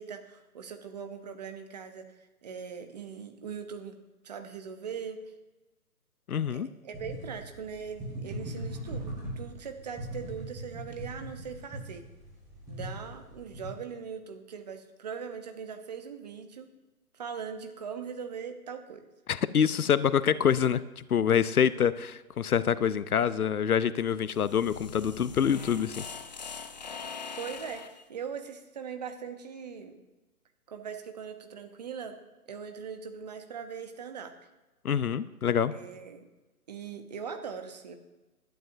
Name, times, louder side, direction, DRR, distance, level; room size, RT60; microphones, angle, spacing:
voice 1, 0.0-4.0 4.2-5.2 6.5-12.0 12.7-16.7 17.1-19.0 27.4-30.0 30.7-32.2 32.5-34.3 35.7-36.3 36.7-37.9, right 6 dB, 25° right, 7 dB, 0.8 m, -40 dB
voice 2, 6.3-6.7 19.3-26.0 34.8-35.7, left 8 dB, 70° left, 16 dB, 0.7 m, -26 dB
sound 1, 6.9-13.7, right 1 dB, 5° right, 4.9 m, -40 dB
sound 2, 24.2-28.0, left 5 dB, 30° left, 0.6 m, -42 dB
19.0 x 11.5 x 2.7 m, 1.1 s
figure-of-eight pair, 145°, 46 cm